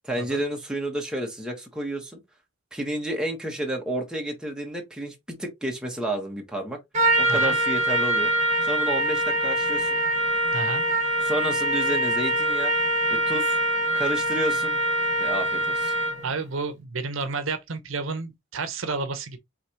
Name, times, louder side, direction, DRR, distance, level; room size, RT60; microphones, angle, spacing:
voice 1, 0.0-2.2 2.7-6.8 7.2-8.3 8.6-10.0 11.2-12.7 13.1-13.6 13.9-14.8 15.2-15.9, right 1 dB, 5° right, 1.2 m, -30 dB
Trumpet, 6.9-16.3, right 1 dB, 35° right, 1.6 m, -24 dB
voice 2, 10.5-10.8 16.2-19.4, right 4 dB, 70° right, 0.8 m, -31 dB
4.9 x 3.4 x 2.9 m
head